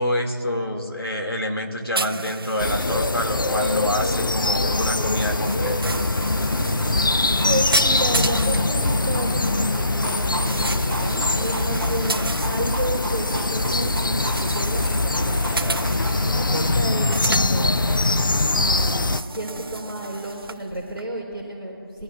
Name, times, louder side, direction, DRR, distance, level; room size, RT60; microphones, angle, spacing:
voice 1, 0.0-6.1, equal, 85° left, 1 dB, 2.2 m, -27 dB
sound 1, 1.9-16.4 16.9-17.5 18.6-20.6 21.0-21.1, right 3 dB, 75° right, 0.4 m, -34 dB
sound 2, 2.6-19.2, left 2 dB, 60° left, 0.6 m, -23 dB
sound 3, 2.6-18.2, right 1 dB, 15° right, 1.5 m, -37 dB
voice 2, 6.4-15.7 16.2-17.8 18.1-22.0, right 1 dB, 5° left, -12 dB, 1.8 m, -31 dB
23.0 x 12.5 x 2.4 m, 2.7 s
figure-of-eight pair, 165°, 12 cm